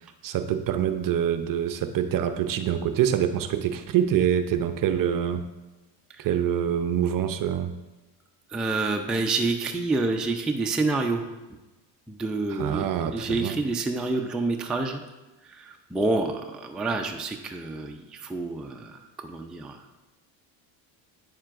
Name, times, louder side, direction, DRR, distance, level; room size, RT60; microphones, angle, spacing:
voice 1, 0.2-5.5 6.2-7.8 12.5-13.6, right 9 dB, 40° right, 9 dB, 0.6 m, -25 dB
voice 2, 8.5-11.2 12.1-12.8 13.1-15.0 15.6-18.9 19.2-19.7, right 3 dB, ahead, 2 dB, 0.4 m, -28 dB
8.9 x 7.2 x 2.5 m, 1.1 s
supercardioid pair, 100°, 50 cm